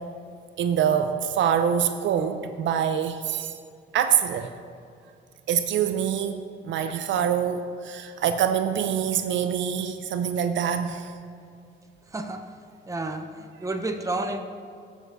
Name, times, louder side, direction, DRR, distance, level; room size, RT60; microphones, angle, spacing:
voice 1, 0.6-3.5 3.9-4.5 5.5-11.1, right 8 dB, 70° right, 9 dB, 0.5 m, -25 dB
voice 2, 12.1-12.5 12.9-14.4, right 2 dB, 15° right, 5 dB, 0.7 m, -31 dB
14.5 x 6.4 x 2.6 m, 2.4 s
cardioid pair, 90°, 20 cm